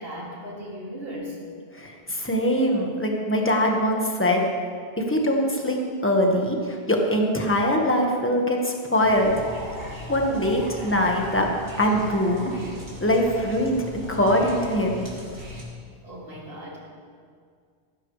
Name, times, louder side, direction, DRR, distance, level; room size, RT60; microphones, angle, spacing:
voice 1, 0.0-1.4 16.0-16.8, equal, 60° right, -4 dB, 2.8 m, -37 dB
voice 2, 1.7-4.4 5.0-9.4 10.1-11.5 11.8-12.5 13.0-13.8 14.1-15.0, equal, 10° left, 0 dB, 1.4 m, -22 dB
sound 1, 9.0-15.6, equal, 85° right, 3.0 m, -38 dB
15.5 x 14.5 x 3.3 m, 2.1 s
omnidirectional pair, 1.1 m